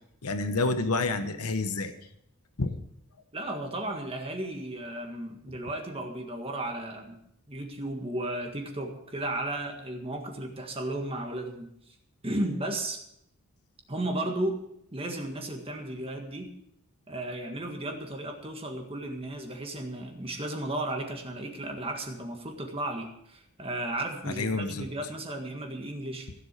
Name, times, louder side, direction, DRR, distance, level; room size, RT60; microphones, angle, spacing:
voice 1, 0.2-1.9 2.6-2.8 24.4-24.9, left 3 dB, 85° left, 9 dB, 1.1 m, -28 dB
voice 2, 3.3-7.2 7.5-12.0 12.2-13.0 13.9-14.6 14.9-16.5 17.1-26.3, right 1 dB, 25° right, 3 dB, 1.7 m, -34 dB
16.0 x 7.9 x 6.8 m, 0.76 s
head